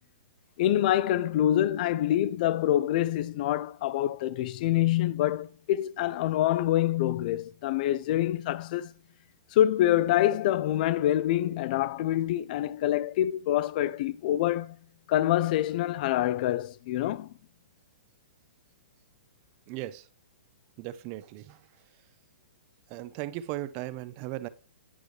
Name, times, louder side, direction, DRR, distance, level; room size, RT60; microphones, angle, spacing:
voice 1, 0.6-8.9 9.5-14.8 15.1-17.3, left 13 dB, 45° left, 0.4 m, -26 dB
voice 2, 19.7-20.1 20.8-21.6 22.9-24.5, right 15 dB, 30° right, 0.5 m, -37 dB
9.0 x 7.8 x 3.2 m
hypercardioid pair, 145°, 6 cm